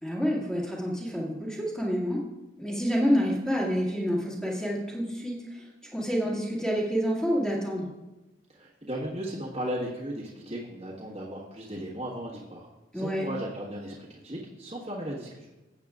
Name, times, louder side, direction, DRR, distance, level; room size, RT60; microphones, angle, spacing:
voice 1, 0.0-2.2 2.6-7.9 12.9-13.3, equal, 5° left, -5 dB, 2.0 m, -28 dB
voice 2, 8.5-12.7 12.9-15.5, equal, 35° right, -7 dB, 1.4 m, -36 dB
15.0 x 8.3 x 2.4 m, 1.1 s
head